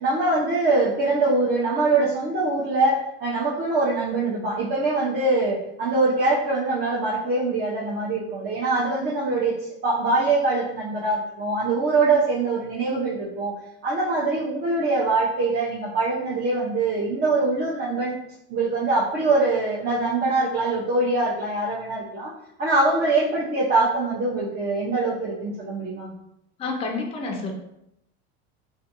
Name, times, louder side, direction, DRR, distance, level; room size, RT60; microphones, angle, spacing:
voice 1, 0.0-9.5 9.8-13.5 13.8-18.1 18.5-22.3 22.6-26.1, right 3 dB, 30° right, -7 dB, 0.6 m, -23 dB
voice 2, 26.6-27.5, left 3 dB, 20° left, 1 dB, 0.4 m, -29 dB
2.4 x 2.2 x 2.8 m, 0.82 s
supercardioid pair, 110°, 33 cm